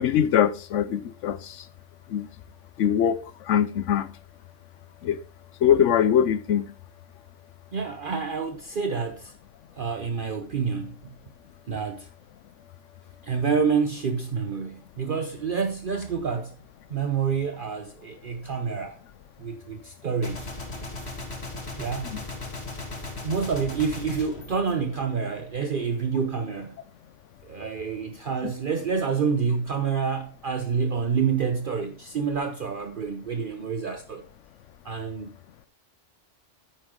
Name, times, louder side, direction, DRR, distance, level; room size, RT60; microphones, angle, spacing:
voice 1, 0.0-1.6 2.1-2.3 2.8-3.2 3.5-4.1 5.0-5.2 5.6-6.7 28.4-28.5, left 9 dB, 85° left, 1.0 m, -22 dB
voice 2, 7.7-9.3 9.8-11.0 11.7-12.1 13.2-16.6 16.9-19.0 19.4-20.5 21.8-22.2 23.2-26.8 27.4-34.2 34.8-35.3, right 6 dB, 50° right, 0.9 m, -28 dB
Gunshot gunfire, 20.2-25.4, left 2 dB, 60° left, 2.8 m, -37 dB
9.8 x 8.8 x 3.7 m
omnidirectional pair, 1.2 m